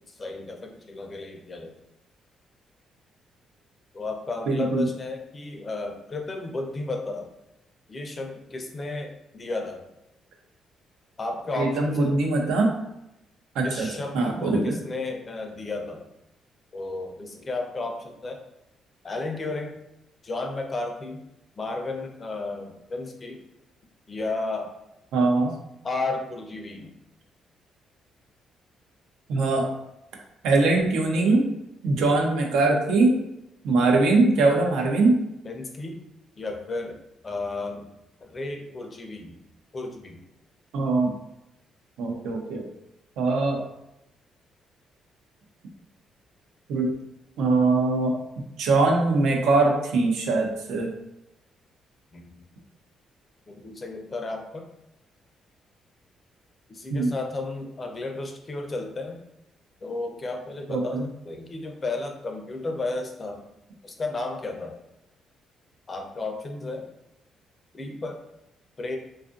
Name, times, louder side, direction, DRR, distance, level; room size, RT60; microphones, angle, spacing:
voice 1, 0.1-1.8 3.9-7.3 7.9-9.9 11.2-12.2 13.6-16.1 16.7-18.5 19.0-19.8 20.2-21.2 21.6-23.4 24.1-24.8 25.8-27.0 35.4-36.0 36.4-37.0 37.2-37.9 38.2-39.3 39.7-40.2 52.1-52.3 53.5-54.7 56.7-59.2 59.8-63.4 63.8-64.8 65.9-66.9 67.7-68.2 68.8-69.0, left 2 dB, 35° left, 3 dB, 0.5 m, -33 dB
voice 2, 4.5-4.9 11.6-12.7 13.5-13.9 14.1-14.8 25.1-25.5 29.3-29.7 30.4-31.5 31.8-33.1 33.6-35.2 40.7-41.1 42.0-42.6 43.2-43.6 46.7-46.9 47.4-48.2 48.6-50.9 56.9-57.1 60.7-61.0, right 3 dB, 85° right, 1 dB, 0.6 m, -22 dB
2.6 x 2.4 x 2.4 m, 0.86 s
cardioid pair, 90°, 0 cm